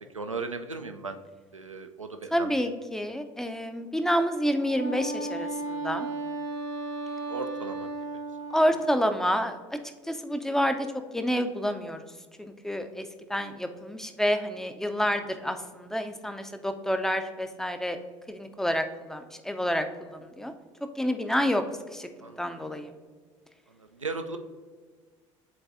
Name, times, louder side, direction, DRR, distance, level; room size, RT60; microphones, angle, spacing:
voice 1, 0.1-1.2 1.5-2.6 7.3-7.9 22.2-22.5 23.7-24.4, right 3 dB, 90° right, 7 dB, 0.4 m, -36 dB
voice 2, 2.3-6.1 8.5-9.8 10.1-10.8 11.1-12.0 12.4-13.0 13.3-18.0 18.3-20.5 21.0-21.6 21.9-22.1 22.4-22.9, equal, 5° left, 7 dB, 0.4 m, -28 dB
Wind instrument woodwind instrument, 4.5-9.2, right 2 dB, 70° right, 1.2 m, -35 dB
9.8 x 3.9 x 2.6 m, 1.5 s
figure-of-eight pair, 65°, 16 cm